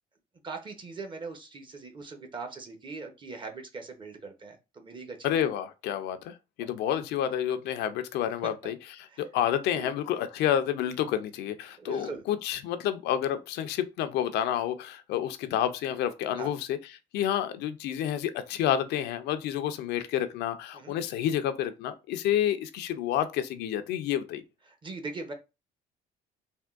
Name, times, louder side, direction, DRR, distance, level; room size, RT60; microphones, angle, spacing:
voice 1, 0.4-5.3 8.4-8.7 9.1-9.2 9.7-9.9 11.8-12.2 16.4-16.5 20.7-21.0 24.7-25.3, right 4 dB, 30° right, 0.7 m, -40 dB
voice 2, 5.2-16.8 17.1-24.4, left 10 dB, 80° left, 0.4 m, -29 dB
3.5 x 2.2 x 2.3 m
cardioid pair, 110°, 17 cm